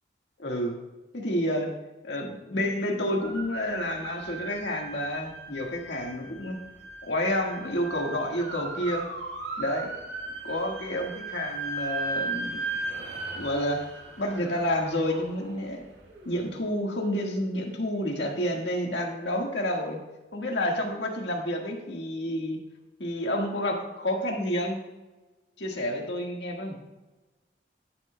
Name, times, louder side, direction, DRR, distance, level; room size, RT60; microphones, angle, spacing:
voice 1, 0.4-0.8 1.1-1.7 2.0-6.6 7.0-9.1 9.6-10.0 10.3-13.9 14.2-15.8 16.2-20.0 20.3-22.6 23.0-24.8 25.6-26.8, left 1 dB, 80° left, 1 dB, 1.6 m, -29 dB
sound 1, 3.2-16.3, right 3 dB, 70° right, 2.0 m, -37 dB
12.5 x 9.4 x 2.2 m, 1.1 s
head